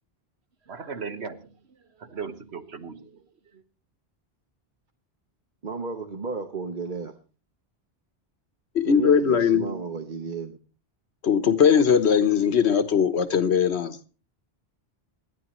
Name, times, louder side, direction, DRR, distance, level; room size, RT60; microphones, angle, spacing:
voice 1, 0.7-1.5 2.0-3.2 3.5-3.6, right 5 dB, 80° right, 8 dB, 1.5 m, -37 dB
voice 2, 5.6-7.1 8.8-10.6, right 5 dB, 50° right, 6 dB, 1.1 m, -33 dB
voice 3, 8.7-9.7 11.2-14.0, left 7 dB, 90° left, 11 dB, 1.4 m, -20 dB
27.5 x 9.9 x 3.1 m, 0.36 s
omnidirectional pair, 1.1 m